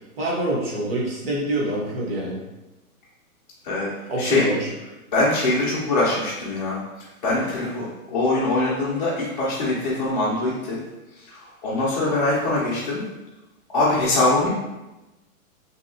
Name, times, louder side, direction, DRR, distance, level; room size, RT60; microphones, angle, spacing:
voice 1, 0.2-2.4 4.1-4.7, right 1 dB, 45° right, -3 dB, 0.7 m, -25 dB
voice 2, 5.1-6.8 7.2-10.8 11.3-13.0 13.7-14.5, left 2 dB, 35° left, -9 dB, 0.5 m, -23 dB
2.8 x 2.7 x 2.6 m, 1.0 s
hypercardioid pair, 170°, 43 cm